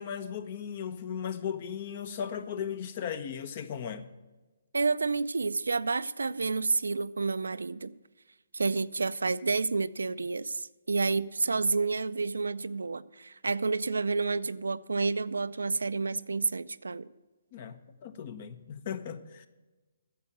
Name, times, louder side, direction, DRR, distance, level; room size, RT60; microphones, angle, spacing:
voice 1, 0.0-4.1 17.5-19.5, left 8 dB, 45° left, 0.9 m, -37 dB
voice 2, 4.7-7.9 8.5-17.1, right 4 dB, 85° right, 0.4 m, -29 dB
9.5 x 7.5 x 8.5 m
hypercardioid pair, 150°, 0 cm